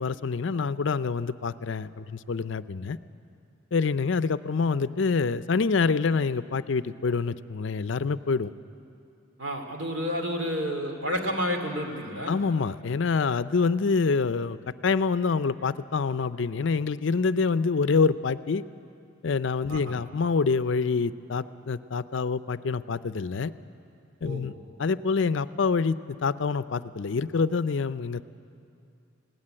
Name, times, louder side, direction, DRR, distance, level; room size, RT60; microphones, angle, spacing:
voice 1, 0.0-3.0 3.7-8.5 12.3-14.6 14.8-18.6 19.2-23.5 24.2-24.5 24.8-28.2, left 4 dB, 65° left, 14 dB, 0.5 m, -26 dB
voice 2, 9.4-12.3 19.7-20.0 24.2-24.4, equal, 65° right, 4 dB, 2.5 m, -30 dB
19.5 x 17.0 x 9.8 m, 2.6 s
head